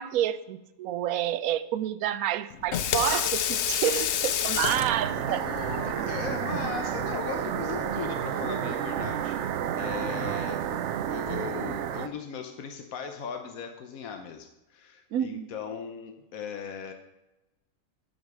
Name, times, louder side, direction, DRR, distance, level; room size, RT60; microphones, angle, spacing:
voice 1, 0.0-5.5 15.1-15.5, right 11 dB, 90° right, 14 dB, 1.1 m, -29 dB
Water tap faucet / Sink (filling or washing), 2.5-8.0, left 9 dB, 65° left, 0.8 m, -31 dB
sound 1, 4.7-12.1, right 9 dB, 65° right, 0.8 m, -31 dB
voice 2, 5.2-9.4 9.8-10.6 11.1-16.9, left 6 dB, 80° left, 5 dB, 1.3 m, -38 dB
13.0 x 5.2 x 6.1 m, 0.98 s
omnidirectional pair, 1.4 m